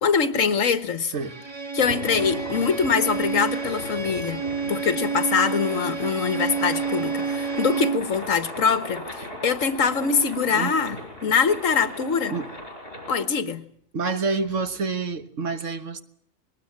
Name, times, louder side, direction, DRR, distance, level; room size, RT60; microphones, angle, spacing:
voice 1, 0.0-1.1 1.7-4.4 4.7-12.3 13.1-13.6, left 6 dB, 75° left, 1.7 m, -23 dB
Bowed string instrument, 1.2-8.1, right 5 dB, 20° right, 1.5 m, -29 dB
sound 1, 1.8-13.1, left 1 dB, 45° left, 6.2 m, -38 dB
voice 2, 13.9-16.0, right 4 dB, 70° right, 1.7 m, -28 dB
21.0 x 20.0 x 8.7 m
omnidirectional pair, 1.4 m